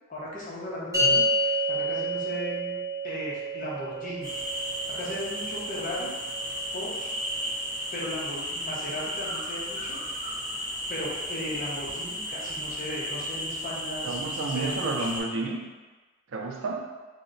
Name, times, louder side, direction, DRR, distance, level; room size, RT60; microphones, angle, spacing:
voice 1, 0.1-4.3 4.9-6.1 6.7-7.1 7.9-10.0 10.9-15.1, left 1 dB, 40° left, -5 dB, 0.7 m, -36 dB
sound 1, 0.9-7.5, equal, 15° right, 0.7 m, -30 dB
sound 2, 4.2-15.2, equal, ahead, 1.3 m, -34 dB
voice 2, 14.0-15.6 16.3-16.8, right 3 dB, 65° right, 1 dB, 0.4 m, -31 dB
2.8 x 2.1 x 3.7 m, 1.3 s
head